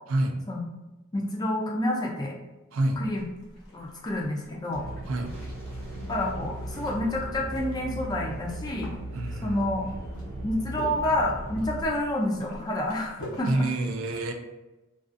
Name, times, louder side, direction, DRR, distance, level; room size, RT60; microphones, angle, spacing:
voice 1, 1.1-2.3 3.0-3.3 3.7-4.9 6.1-8.9 9.4-9.8 10.4-13.7, left 1 dB, 20° left, -1 dB, 0.3 m, -29 dB
voice 2, 2.7-3.0 5.1-5.3 9.1-9.6 9.9-10.0 13.5-14.3, right 2 dB, 65° right, 4 dB, 0.4 m, -27 dB
sound 1, 2.9-13.6, equal, 85° left, 0.8 m, -46 dB
sound 2, 4.7-11.9, right 1 dB, 45° right, 0.8 m, -37 dB
2.4 x 2.3 x 2.4 m, 1.0 s
head